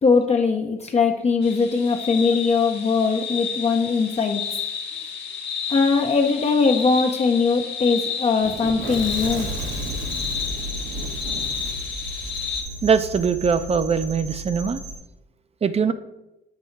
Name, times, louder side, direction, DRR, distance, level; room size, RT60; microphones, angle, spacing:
voice 1, 0.0-4.4 5.7-9.5, left 4 dB, 35° left, 3 dB, 0.6 m, -20 dB
sound 1, 1.4-12.6, left 7 dB, 60° left, 1.2 m, -31 dB
Fire / Explosion, 8.4-13.3, right 4 dB, 70° right, 1.1 m, -36 dB
sound 2, 9.1-15.0, right 1 dB, 90° right, 1.9 m, -35 dB
voice 2, 12.8-14.8 15.6-15.9, right 6 dB, 30° right, 12 dB, 0.5 m, -21 dB
7.7 x 2.7 x 5.7 m, 0.94 s
cardioid pair, 90°, 20 cm